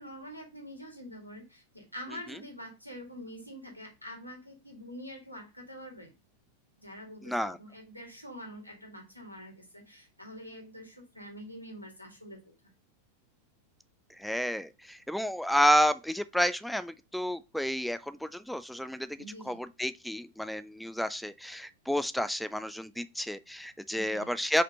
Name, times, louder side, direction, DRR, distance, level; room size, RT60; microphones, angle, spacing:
voice 1, 0.0-6.1 6.8-12.4 19.2-19.6 23.9-24.3, equal, 90° left, 2.2 m, -46 dB
voice 2, 7.2-7.6 14.2-19.2 19.5-24.6, equal, ahead, 0.4 m, -30 dB
5.1 x 4.3 x 5.3 m
figure-of-eight pair, 90°, 0 cm